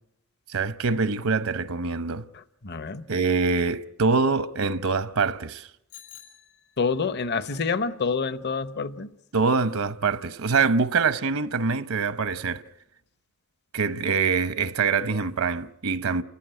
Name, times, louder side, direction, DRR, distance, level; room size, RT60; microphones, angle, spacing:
voice 1, 0.5-2.2 3.1-5.7 9.3-12.6 13.7-16.2, right 4 dB, 80° right, 0.8 m, -24 dB
voice 2, 2.6-3.0 6.8-9.1, left 5 dB, 50° left, 0.8 m, -27 dB
Bicycle bell, 5.9-7.2, left 10 dB, 85° left, 6.2 m, -49 dB
29.5 x 14.5 x 9.0 m
head